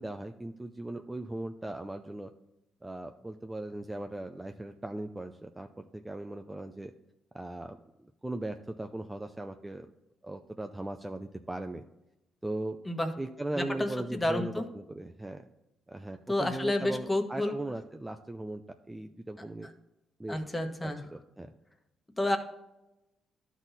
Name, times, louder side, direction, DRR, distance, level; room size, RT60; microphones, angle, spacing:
voice 1, 0.0-2.3 2.8-5.7 5.9-6.9 7.3-9.9 10.2-11.8 12.4-12.8 13.2-15.4 15.9-18.6 18.9-19.7 20.2-20.4 20.8-21.5, right 1 dB, 15° right, 6 dB, 0.5 m, -38 dB
voice 2, 13.5-14.7 16.3-17.5 20.3-21.0 22.2-22.4, left 1 dB, 15° left, 5 dB, 1.2 m, -30 dB
12.0 x 4.1 x 4.0 m, 0.94 s
cardioid pair, 90°, 0 cm